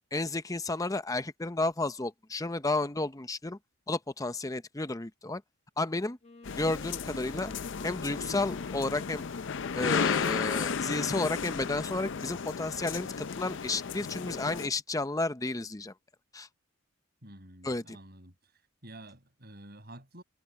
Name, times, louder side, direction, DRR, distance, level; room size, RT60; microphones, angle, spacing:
voice 1, 0.1-3.6 3.9-5.4 5.8-6.2 6.6-7.5 7.8-9.2 9.7-15.9 16.3-16.5 17.6-18.0, left 2 dB, 15° left, 0.7 m, -32 dB
Wind instrument woodwind instrument, 6.2-12.9, left 2 dB, 30° left, 1.5 m, -52 dB
sound 1, 6.4-14.7, left 6 dB, 60° left, 0.5 m, -34 dB
voice 2, 17.2-18.3 18.8-20.2, right 1 dB, 50° right, 6.2 m, -49 dB
head